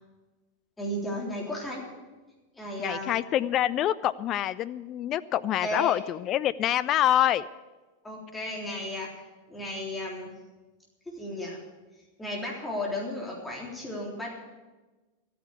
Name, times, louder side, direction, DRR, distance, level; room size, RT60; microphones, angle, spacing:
voice 1, 0.8-1.8 2.6-3.2 5.6-5.9 8.0-9.1 9.5-10.3 11.1-11.6 12.2-14.3, left 1 dB, 10° left, -3 dB, 3.6 m, -34 dB
voice 2, 2.8-7.5, left 12 dB, 35° left, 17 dB, 0.4 m, -26 dB
13.5 x 9.3 x 8.4 m, 1.2 s
figure-of-eight pair, 90°, 0 cm